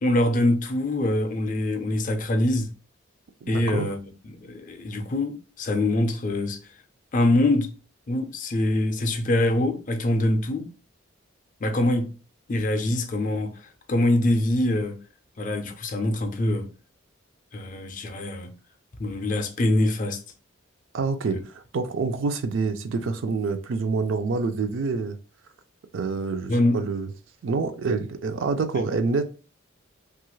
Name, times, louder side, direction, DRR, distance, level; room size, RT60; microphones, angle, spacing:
voice 1, 0.0-2.7 3.5-4.0 4.2-6.6 7.1-7.7 8.1-10.7 11.6-12.2 12.5-13.6 13.9-15.0 15.4-16.7 17.5-18.5 19.0-20.2 21.3-21.4 26.5-26.9 28.7-28.8, left 1 dB, 40° left, 0.4 m, -24 dB
voice 2, 3.4-3.9 20.9-25.2 25.9-27.1 27.4-29.2, right 4 dB, 70° right, 0.4 m, -27 dB
2.9 x 2.4 x 3.0 m
head